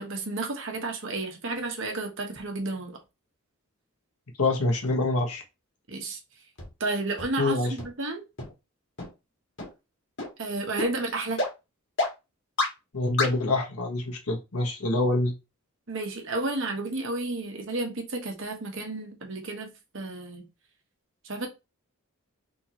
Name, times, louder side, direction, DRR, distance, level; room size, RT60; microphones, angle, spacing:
voice 1, 0.0-3.0 5.9-6.2 6.8-8.2 10.4-11.4 15.9-20.4 21.2-21.5, right 2 dB, 60° right, 1.2 m, -32 dB
voice 2, 4.4-5.4 7.4-7.7 12.9-15.3, left 2 dB, 90° left, 1.3 m, -26 dB
sound 1, 6.6-6.7 7.2-7.3 7.8-7.9 8.4-8.5 9.0-9.1 9.6-9.7 10.2-10.3 10.8-10.9 11.4-11.5 12.0-12.1 12.6-12.7 13.2-13.3, left 2 dB, 55° left, 2.0 m, -27 dB
4.3 x 3.8 x 3.0 m
head